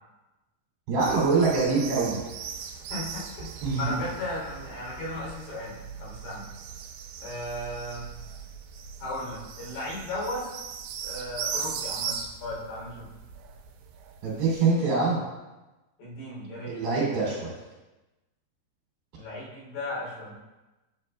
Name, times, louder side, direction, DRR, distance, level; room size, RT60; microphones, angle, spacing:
voice 1, 0.9-2.2 3.6-3.9 14.2-15.2 16.7-17.5, right 4 dB, 65° right, -6 dB, 4.8 m, -24 dB
sound 1, 1.0-14.6, right 7 dB, 85° right, 3.0 m, -39 dB
voice 2, 2.9-3.5 3.7-6.4 7.2-8.1 9.0-10.5 11.0-12.2 12.4-13.1 16.0-16.8 19.1-20.3, left 1 dB, 65° left, -7 dB, 5.1 m, -35 dB
10.5 x 8.2 x 2.3 m, 1.1 s
omnidirectional pair, 5.0 m